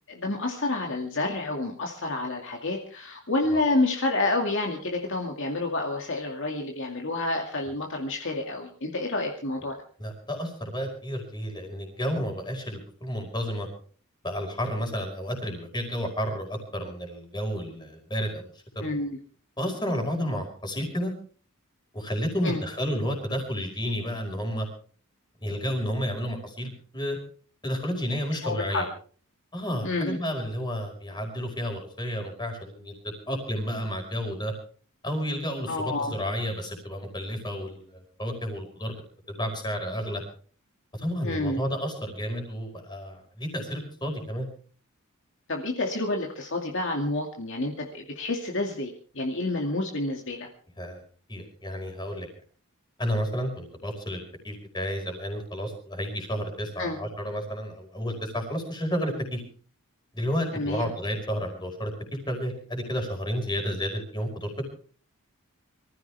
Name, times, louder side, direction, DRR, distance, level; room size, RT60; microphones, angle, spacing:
voice 1, 0.1-9.8 18.8-19.2 22.4-22.6 28.3-28.8 29.8-30.2 35.7-36.1 41.2-41.6 45.5-50.5 56.8-57.0 60.5-60.9, left 2 dB, 60° left, 1 dB, 2.3 m, -29 dB
voice 2, 10.0-13.7 14.2-18.5 18.7-18.8 19.6-21.1 21.9-24.7 25.4-27.2 27.6-28.9 29.5-32.9 33.3-34.5 35.0-39.0 39.3-40.2 40.9-44.5 50.8-51.0 51.3-52.3 53.0-59.4 60.1-61.9 62.3-64.7, equal, 20° left, 3 dB, 5.1 m, -31 dB
24.5 x 15.0 x 3.5 m, 0.43 s
head